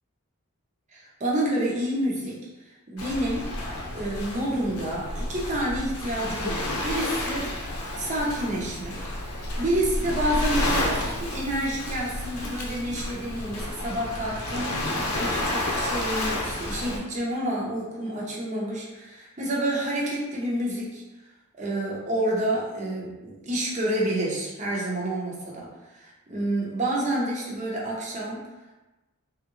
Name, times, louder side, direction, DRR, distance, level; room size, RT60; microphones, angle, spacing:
voice 1, 0.9-2.4 2.9-3.5 3.9-7.5 8.0-9.0 9.6-21.0 21.6-28.4, right 1 dB, 35° right, -4 dB, 0.7 m, -29 dB
Waves surf, 3.0-17.0, left 1 dB, 90° left, 0.7 m, -30 dB
3.5 x 2.4 x 3.0 m, 1.1 s
head